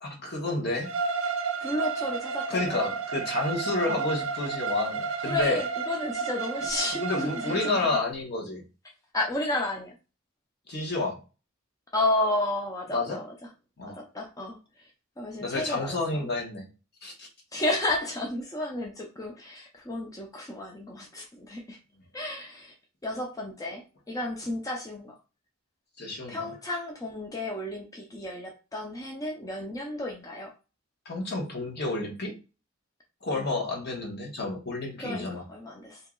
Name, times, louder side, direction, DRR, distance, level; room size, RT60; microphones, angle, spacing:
voice 1, 0.0-0.9 2.5-5.6 7.0-8.6 10.7-11.2 12.9-13.2 13.8-14.0 15.4-16.7 17.0-17.3 26.0-26.5 31.0-32.3 33.2-35.4, left 3 dB, 55° left, -1 dB, 1.2 m, -30 dB
Bowed string instrument, 0.8-8.0, right 5 dB, 70° right, 0.6 m, -32 dB
voice 2, 1.6-2.9 5.2-7.7 9.1-9.9 11.9-13.3 13.9-14.6 15.2-16.3 17.5-21.8 22.1-22.7 23.0-25.1 26.3-30.5 33.4-33.5 35.0-36.0, left 1 dB, 20° left, 0 dB, 0.6 m, -32 dB
2.9 x 2.8 x 3.7 m, 0.32 s
head